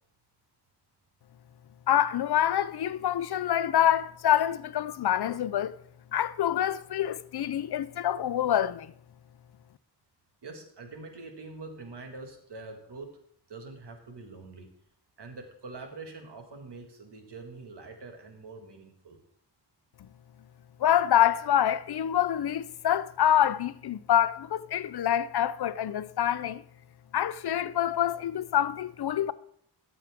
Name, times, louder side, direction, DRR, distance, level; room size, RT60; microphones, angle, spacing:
voice 1, 1.9-5.8 6.1-8.9 20.8-26.6 27.1-29.3, left 10 dB, 65° left, 0.5 m, -26 dB
voice 2, 10.4-13.2 13.5-14.7 15.2-19.2, right 3 dB, 75° right, 1.9 m, -44 dB
14.0 x 7.2 x 3.6 m
wide cardioid pair, 90°, 42 cm